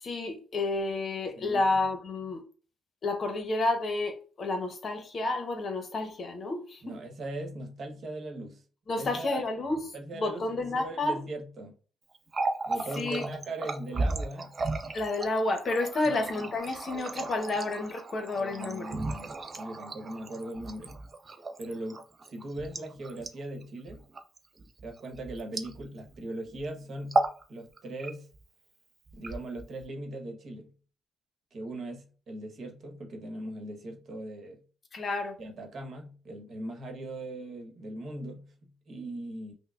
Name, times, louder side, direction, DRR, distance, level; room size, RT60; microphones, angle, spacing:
voice 1, 0.0-2.4 3.0-6.9 8.9-11.2 13.0-13.3 14.9-18.9 34.9-35.3, left 2 dB, 50° left, 0.8 m, -30 dB
voice 2, 1.3-1.8 6.8-8.6 9.0-9.4 9.9-11.7 12.7-14.6 16.0-16.5 18.4-21.0 21.6-24.1 24.8-28.3 29.1-30.7 31.5-34.6 35.4-39.5, right 1 dB, 55° right, 1.0 m, -40 dB
Water tap faucet, 12.2-26.2 26.5-26.7 27.0-27.4 27.8-28.4 29.1-29.8, right 2 dB, 35° right, 0.5 m, -35 dB
5.5 x 2.1 x 2.3 m
cardioid pair, 90°, 0 cm